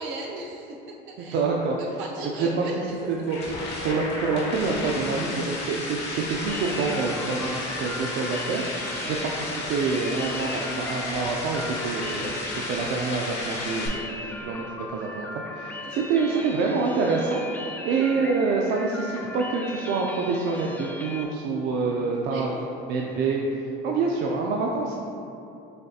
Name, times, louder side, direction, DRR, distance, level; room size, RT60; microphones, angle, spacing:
voice 1, 0.0-1.4 1.8-2.9 9.0-9.8 15.8-15.9 16.2-16.4 17.9-18.1 22.3-22.7, right 2 dB, 80° right, -2 dB, 0.8 m, -37 dB
voice 2, 1.2-2.0 2.3-2.7 3.1-3.4 3.8-25.0, right 4 dB, 65° right, -1 dB, 0.4 m, -27 dB
sound 1, 2.9-13.9, left 2 dB, 60° left, 1.0 m, -33 dB
sound 2, 6.5-21.2, left 1 dB, 10° left, 0.4 m, -38 dB
6.5 x 2.7 x 2.3 m, 2.9 s
cardioid pair, 105°, 20 cm